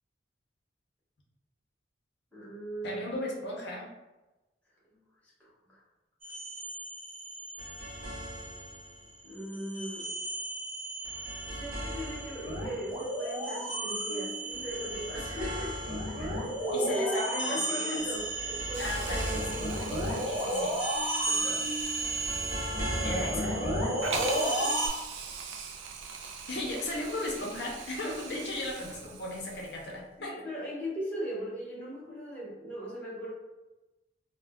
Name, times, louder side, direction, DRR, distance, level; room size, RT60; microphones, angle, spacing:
voice 1, 2.3-3.1 5.4-5.8 9.2-10.1 11.5-15.9 16.2-16.3 16.6-19.7 24.0-24.8 28.5-28.7 30.2-33.3, right 1 dB, 10° left, -8 dB, 0.8 m, -38 dB
voice 2, 2.8-3.9 16.7-18.0 18.8-19.6 20.2-20.8 21.3-21.6 23.0-23.6 26.5-30.3, left 1 dB, 60° left, -2 dB, 0.5 m, -36 dB
sound 1, 6.2-8.9 9.3-24.9, right 1 dB, 30° right, 1.0 m, -33 dB
Hiss, 18.7-30.0, right 5 dB, 85° right, 0.4 m, -42 dB
2.3 x 2.1 x 3.4 m, 1.1 s
head